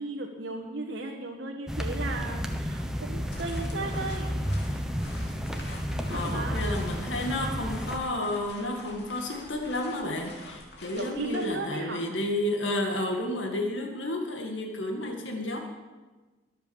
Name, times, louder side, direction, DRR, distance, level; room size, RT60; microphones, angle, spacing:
voice 1, 0.0-4.3 6.1-6.7 10.9-12.0, right 2 dB, 70° right, 0 dB, 1.5 m, -35 dB
sound 1, 1.7-8.0, equal, 5° right, 1.0 m, -31 dB
sound 2, 3.2-11.5, left 2 dB, 65° left, 3.1 m, -47 dB
voice 2, 6.1-15.6, left 1 dB, 90° left, 2 dB, 2.1 m, -31 dB
23.0 x 8.0 x 7.2 m, 1.3 s
head